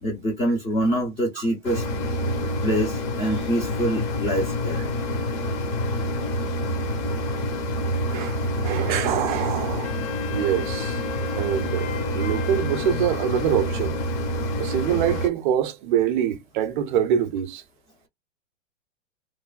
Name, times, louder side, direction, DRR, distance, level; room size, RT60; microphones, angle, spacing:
voice 1, 0.0-1.8 2.4-4.8, right 1 dB, 15° left, 0.5 m, -25 dB
sound 1, 1.6-15.3, left 1 dB, 30° left, 0.8 m, -27 dB
voice 2, 8.1-9.9 10.3-11.0 11.3-14.0 14.6-17.6, right 10 dB, 40° right, 0.5 m, -25 dB
Wind instrument woodwind instrument, 9.8-14.1, left 5 dB, 55° left, 1.1 m, -38 dB
3.1 x 2.1 x 2.3 m
hypercardioid pair, 120°, 39 cm